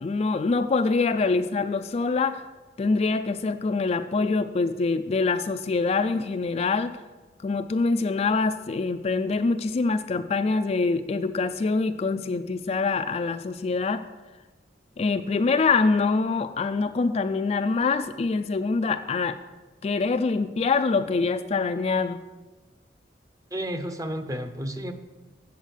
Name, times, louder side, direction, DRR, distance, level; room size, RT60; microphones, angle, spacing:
voice 1, 0.0-2.4 2.8-6.9 7.4-14.0 15.0-19.4 19.8-22.2, left 4 dB, 35° left, 9 dB, 0.3 m, -25 dB
voice 2, 23.5-24.9, equal, 20° right, 8 dB, 0.7 m, -31 dB
8.1 x 7.1 x 6.4 m, 1.2 s
head